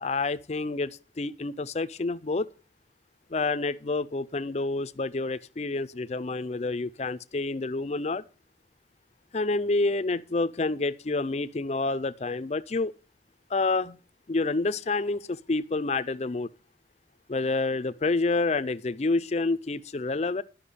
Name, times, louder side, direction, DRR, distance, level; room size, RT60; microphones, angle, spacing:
voice 1, 0.0-2.5 3.3-8.2 9.3-12.9 13.5-14.0 14.3-16.5 17.3-20.4, left 3 dB, 35° left, 0.5 m, -28 dB
11.5 x 5.8 x 6.8 m
head